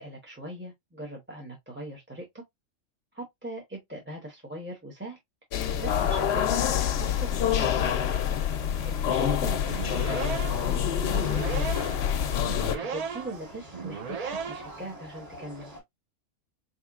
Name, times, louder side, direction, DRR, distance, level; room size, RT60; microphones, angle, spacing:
voice 1, 0.0-2.2 3.1-5.2 5.8-7.5 8.8-12.1 12.6-15.7, right 1 dB, 10° right, 0.7 m, -40 dB
sound 1, 5.5-12.8, left 9 dB, 65° left, 0.7 m, -26 dB
sound 2, 5.6-15.8, equal, 30° right, 1.7 m, -47 dB
sound 3, 9.7-14.9, right 5 dB, 80° right, 0.3 m, -36 dB
4.0 x 3.0 x 2.3 m
omnidirectional pair, 1.3 m